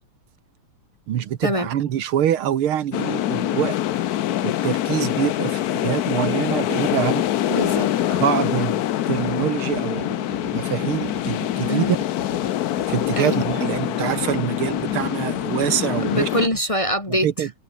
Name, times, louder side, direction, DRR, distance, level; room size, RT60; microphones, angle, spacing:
voice 1, 1.1-3.8 4.4-7.3 8.2-12.0 12.9-16.3 17.1-17.5, right 10 dB, 75° right, 2.0 m, -25 dB
sound 1, 2.9-16.5, left 13 dB, 70° left, 0.9 m, -24 dB
voice 2, 7.5-8.2 11.7-11.9 13.2-13.4 16.0-17.5, equal, 15° left, 1.8 m, -24 dB
sound 2, 9.1-16.6, right 4 dB, 55° right, 3.8 m, -42 dB
omnidirectional pair, 2.4 m